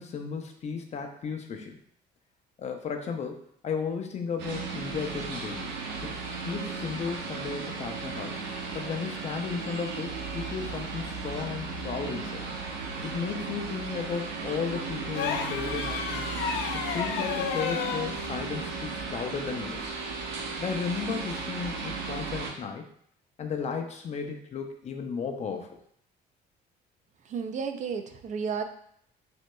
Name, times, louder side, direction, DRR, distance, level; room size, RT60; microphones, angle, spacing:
voice 1, 0.0-1.8 2.6-5.7 6.0-6.1 6.4-8.4 8.7-12.4 13.0-16.3 16.7-19.9 20.6-22.9 23.4-25.8, left 6 dB, 40° left, 4 dB, 0.6 m, -34 dB
sound 1, 4.4-22.5, right 4 dB, 85° right, 0.9 m, -35 dB
sound 2, 15.1-18.1 19.8-19.9, left 7 dB, 85° left, 0.5 m, -31 dB
voice 2, 27.3-28.6, right 6 dB, 45° right, 7 dB, 0.4 m, -32 dB
6.2 x 2.7 x 2.2 m, 0.65 s
cardioid pair, 110°, 17 cm